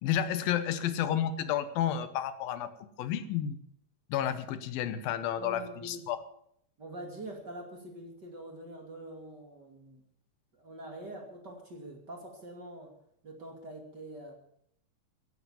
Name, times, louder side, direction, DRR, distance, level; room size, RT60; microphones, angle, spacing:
voice 1, 0.0-2.7 3.0-3.6 4.1-6.2, left 10 dB, 85° left, 12 dB, 2.9 m, -31 dB
voice 2, 5.4-6.0 6.8-10.0 10.5-12.9 13.2-14.3, right 1 dB, 30° right, 2 dB, 2.7 m, -45 dB
15.0 x 11.0 x 7.2 m, 0.70 s
omnidirectional pair, 4.1 m